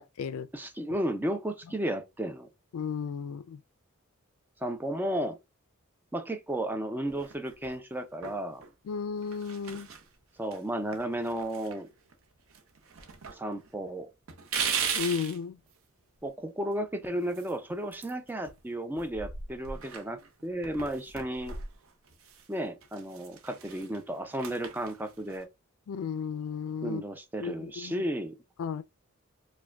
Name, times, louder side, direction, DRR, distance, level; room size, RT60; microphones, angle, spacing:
voice 1, 0.0-0.5 2.7-3.6 8.9-9.9 14.9-15.6 25.9-27.0 27.4-28.0 28.6-28.8, left 6 dB, 75° left, 0.3 m, -34 dB
voice 2, 0.5-2.5 4.6-5.4 6.1-8.6 10.4-11.9 13.3-14.1 16.2-21.6 22.5-25.5 26.8-28.4, right 1 dB, 10° right, 0.4 m, -33 dB
sound 1, 7.1-7.8 8.2-8.7 9.2-10.1 10.5-10.6 10.9-12.2 12.5-13.4 13.7-13.8 14.3-15.4 17.2-18.6 18.9-22.5 22.8-25.4, right 6 dB, 70° right, 0.6 m, -38 dB
4.7 x 2.2 x 2.2 m
head